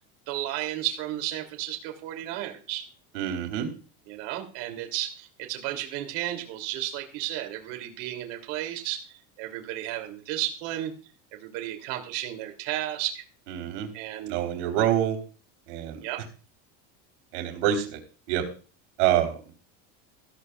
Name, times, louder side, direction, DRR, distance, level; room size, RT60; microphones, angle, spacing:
voice 1, 0.3-2.9 4.1-10.9 11.3-13.2 13.9-14.4 16.0-16.2, right 13 dB, 55° right, 4 dB, 2.9 m, -33 dB
voice 2, 3.1-3.7 13.5-13.9 14.3-15.2 15.7-16.0 17.3-18.0 18.3-18.4 19.0-19.4, right 11 dB, 70° right, 4 dB, 3.8 m, -26 dB
15.0 x 14.0 x 2.4 m, 0.36 s
cardioid pair, 175°, 37 cm